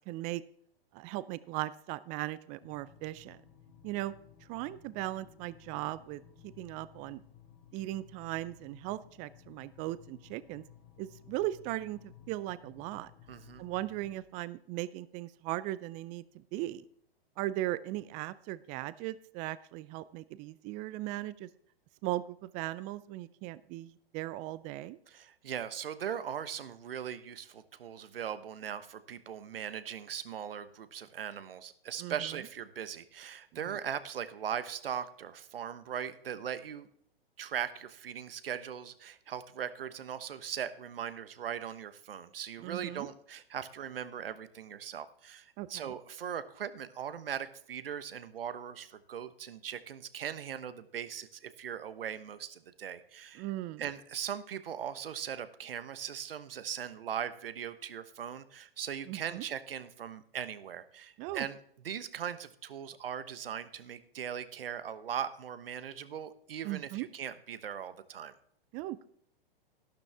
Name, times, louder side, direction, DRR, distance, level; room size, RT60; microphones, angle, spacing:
voice 1, 0.1-0.4 0.9-3.4 3.8-4.1 4.5-7.2 7.7-10.6 11.0-13.1 13.6-16.2 16.5-16.8 17.4-21.5 22.0-25.0 32.0-32.2 33.5-33.7 42.6-43.1 45.6-46.0 53.4-53.8 59.1-59.4 61.2-61.5 66.6-67.1 68.7-69.1, right 16 dB, 25° right, 17 dB, 0.4 m, -38 dB
sound 1, 2.6-14.2, left 9 dB, 45° left, 1.5 m, -57 dB
voice 2, 13.3-13.6 25.1-36.9 37.4-53.5 53.8-61.6 61.8-68.3, right 8 dB, 70° right, 13 dB, 1.1 m, -39 dB
12.5 x 12.0 x 3.5 m, 0.66 s
hypercardioid pair, 110°, 30 cm